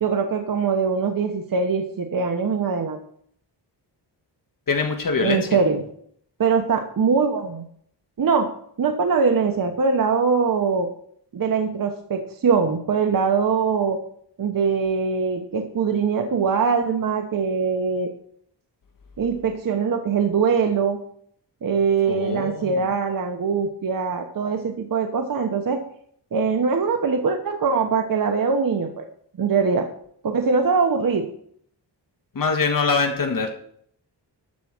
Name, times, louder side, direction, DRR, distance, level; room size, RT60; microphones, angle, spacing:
voice 1, 0.0-3.0 5.2-5.8 6.4-7.7 8.2-8.5 8.8-10.9 11.3-14.0 14.4-18.1 19.2-21.0 21.6-25.8 26.3-29.0 29.4-29.9 30.2-31.3, right 5 dB, 50° right, 4 dB, 1.1 m, -22 dB
voice 2, 4.7-5.5 22.1-22.8 32.3-33.5, left 4 dB, 50° left, 4 dB, 1.4 m, -23 dB
12.5 x 4.7 x 7.2 m, 0.63 s
wide cardioid pair, 125°, 42 cm